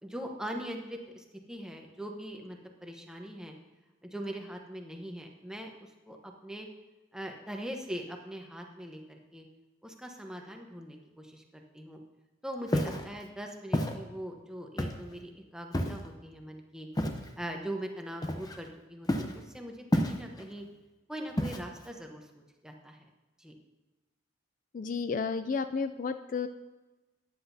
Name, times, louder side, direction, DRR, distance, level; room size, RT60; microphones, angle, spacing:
voice 1, 0.0-3.5 4.0-6.7 7.1-9.5 9.8-12.0 12.4-16.9 17.4-20.7 21.1-23.1 23.4-23.5, equal, 5° right, 2 dB, 1.0 m, -41 dB
Walk footsteps, 12.7-13.0 13.7-14.0 14.8-15.1 15.7-16.1 17.0-17.3 18.2-18.7 19.1-19.4 19.9-20.4 21.4-21.9, equal, 20° left, 0.8 m, -30 dB
voice 2, 24.7-26.5, left 5 dB, 40° left, 10 dB, 0.3 m, -32 dB
14.0 x 10.0 x 2.7 m, 1.2 s
head